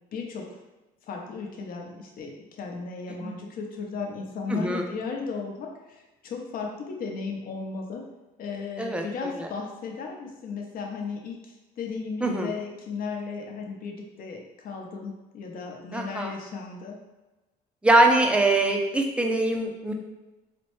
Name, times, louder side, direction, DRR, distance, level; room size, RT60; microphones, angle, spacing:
voice 1, 0.1-0.6 1.0-8.0 8.4-17.0, left 4 dB, 60° left, 1 dB, 0.7 m, -35 dB
voice 2, 4.5-4.9 8.8-9.5 12.2-12.5 15.9-16.3 17.8-19.9, right 2 dB, 5° right, 2 dB, 0.4 m, -23 dB
4.2 x 2.1 x 3.1 m, 1.1 s
cardioid pair, 110°, 17 cm